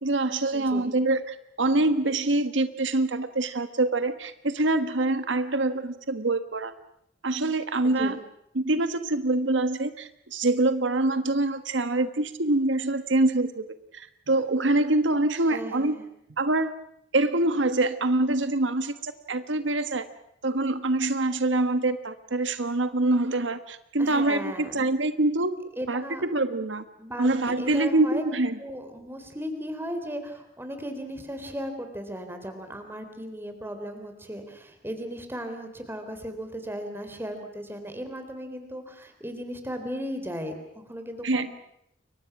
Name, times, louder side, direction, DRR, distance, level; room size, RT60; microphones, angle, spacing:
voice 1, 0.0-6.7 7.2-8.2 8.5-13.6 13.9-16.0 16.4-16.7 17.1-20.0 20.4-25.6 25.9-26.0 26.3-26.8 27.2-28.6 41.2-41.5, right 2 dB, 85° right, 10 dB, 1.4 m, -25 dB
voice 2, 0.5-0.9 7.8-8.2 15.5-16.0 24.0-24.9 25.8-26.3 27.0-28.3 28.6-41.5, equal, 10° right, 6 dB, 3.7 m, -36 dB
29.5 x 23.5 x 6.0 m, 0.75 s
head